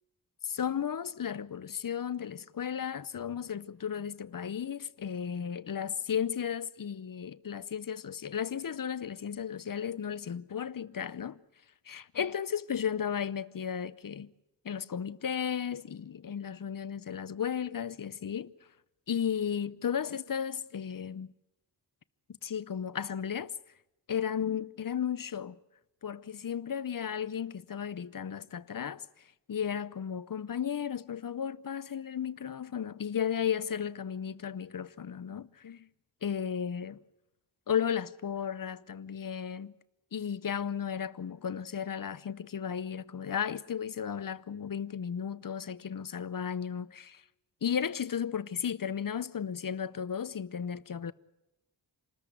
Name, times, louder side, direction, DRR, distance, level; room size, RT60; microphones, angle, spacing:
voice 1, 0.4-11.4 11.9-14.3 14.6-18.5 19.1-21.3 22.4-23.5 24.1-25.6 26.0-29.0 29.5-35.8 36.2-37.0 37.7-39.7 40.1-47.2 47.6-51.1, left 8 dB, 50° left, 0.7 m, -34 dB
27.0 x 13.5 x 9.4 m
wide cardioid pair, 75°, 43 cm